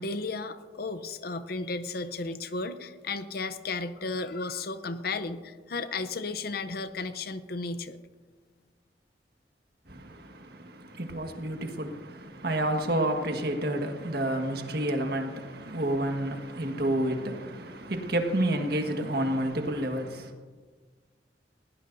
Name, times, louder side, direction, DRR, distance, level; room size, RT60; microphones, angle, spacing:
voice 1, 0.0-8.0, left 3 dB, 60° left, 0.7 m, -34 dB
voice 2, 9.9-20.3, right 1 dB, 60° right, 1.5 m, -30 dB
20.5 x 17.0 x 2.7 m
head